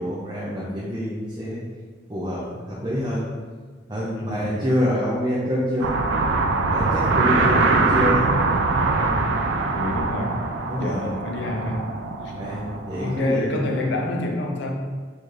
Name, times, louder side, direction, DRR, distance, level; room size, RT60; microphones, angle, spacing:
voice 1, 0.0-1.6 2.1-3.2 3.9-5.9 6.7-8.3 10.7-11.1 12.3-13.6, equal, 25° right, -8 dB, 0.5 m, -26 dB
voice 2, 4.2-4.6 7.4-7.8 8.9-9.3 9.7-10.4 10.8-11.9 12.2-12.3 13.0-14.7, left 1 dB, 80° left, 1 dB, 0.5 m, -28 dB
sound 1, 5.8-13.3, right 3 dB, 80° right, 0.4 m, -23 dB
4.2 x 2.5 x 3.1 m, 1.5 s
head